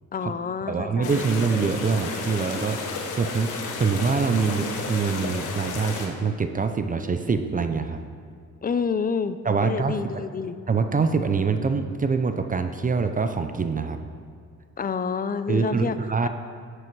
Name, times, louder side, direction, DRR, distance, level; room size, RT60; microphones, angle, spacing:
voice 1, 0.1-1.3 8.6-10.6 14.8-16.0 16.2-16.3, left 6 dB, 30° left, 12 dB, 0.5 m, -28 dB
voice 2, 0.7-2.8 3.1-8.0 9.4-9.9 10.7-14.0 15.5-16.3, right 5 dB, 25° right, 8 dB, 0.6 m, -24 dB
sound 1, 1.0-6.1, left 4 dB, 85° left, 1.4 m, -32 dB
11.0 x 7.9 x 4.7 m, 2.3 s
cardioid pair, 90°, 30 cm